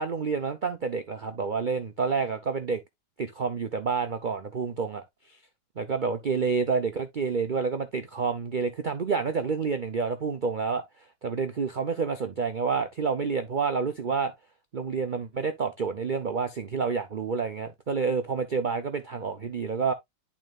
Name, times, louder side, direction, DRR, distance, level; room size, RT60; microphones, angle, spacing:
voice 1, 0.0-2.8 3.2-5.4 5.8-10.8 11.2-14.3 14.7-19.9, right 5 dB, 85° right, 0.4 m, -29 dB
11.0 x 4.4 x 2.4 m
omnidirectional pair, 1.9 m